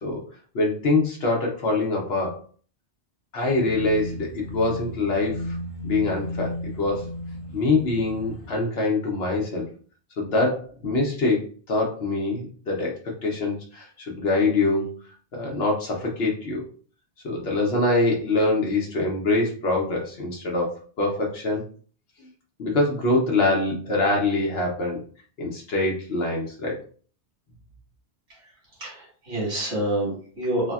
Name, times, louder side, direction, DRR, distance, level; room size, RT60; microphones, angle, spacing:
voice 1, 0.5-2.4 3.3-5.6 5.8-7.1 7.5-9.7 10.2-12.9 13.2-14.9 15.3-16.6 17.2-21.6 22.6-25.0 25.4-26.8, left 2 dB, 65° left, -1 dB, 0.9 m, -24 dB
sound 1, 3.4-8.5, left 1 dB, 40° left, 0.5 m, -35 dB
voice 2, 28.8-30.7, right 1 dB, 90° right, -6 dB, 1.7 m, -27 dB
3.3 x 2.2 x 2.3 m, 0.43 s
omnidirectional pair, 1.1 m